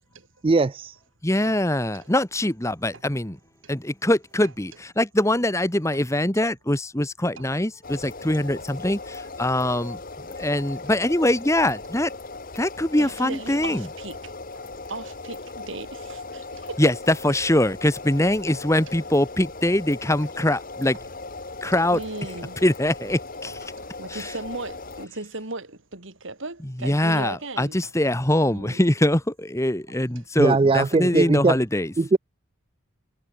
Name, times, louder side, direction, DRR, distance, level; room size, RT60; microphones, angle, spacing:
voice 1, 0.4-1.0 30.4-31.6 32.0-32.2, right 3 dB, 25° right, 0.3 m, -20 dB
voice 2, 1.2-3.4 3.7-9.0 9.4-10.0 10.4-12.1 12.6-13.9 16.8-21.0 21.6-22.0 22.6-23.5 24.1-24.3 26.6-31.9, left 1 dB, 15° left, 1.4 m, -23 dB
sound 1, 7.8-25.1, left 3 dB, 40° left, 1.6 m, -38 dB
voice 3, 13.0-16.8 18.5-18.6 21.5-21.6 21.9-22.6 23.8-27.9 28.4-28.8 29.9-30.0, right 2 dB, 65° right, 3.1 m, -37 dB
head